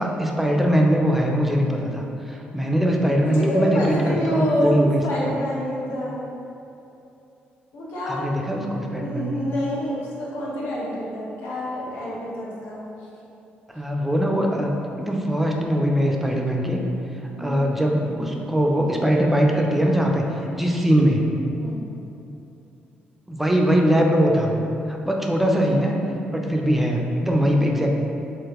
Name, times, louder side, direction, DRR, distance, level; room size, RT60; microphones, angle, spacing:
voice 1, 0.0-5.0 8.1-9.4 13.7-16.8 17.4-21.3 23.3-26.0 26.3-27.9, equal, 5° right, 0 dB, 0.4 m, -21 dB
voice 2, 3.2-4.7 5.0-6.2 7.7-8.3 8.9-12.8 17.3-17.7 21.6-21.8, equal, 90° left, -6 dB, 0.9 m, -27 dB
3.8 x 3.0 x 2.9 m, 2.8 s
cardioid pair, 125°, 4 cm